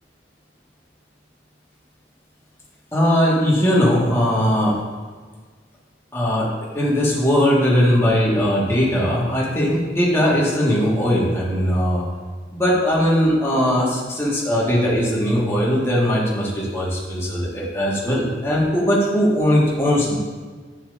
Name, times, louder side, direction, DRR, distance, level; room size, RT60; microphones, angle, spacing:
voice 1, 2.9-4.8 6.1-6.5 6.7-12.0 12.5-20.2, equal, 15° left, -5 dB, 1.6 m, -19 dB
9.7 x 7.0 x 2.6 m, 1.5 s
head